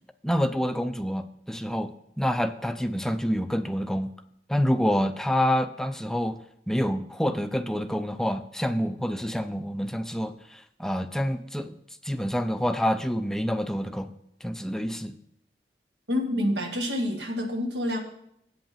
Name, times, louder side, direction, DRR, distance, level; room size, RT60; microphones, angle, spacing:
voice 1, 0.2-4.1 4.5-6.4 6.7-11.8 12.0-14.1 14.4-15.2, equal, 5° left, 9 dB, 0.4 m, -27 dB
voice 2, 16.1-18.0, left 1 dB, 75° right, 3 dB, 1.6 m, -27 dB
8.4 x 5.4 x 7.3 m, 0.75 s
head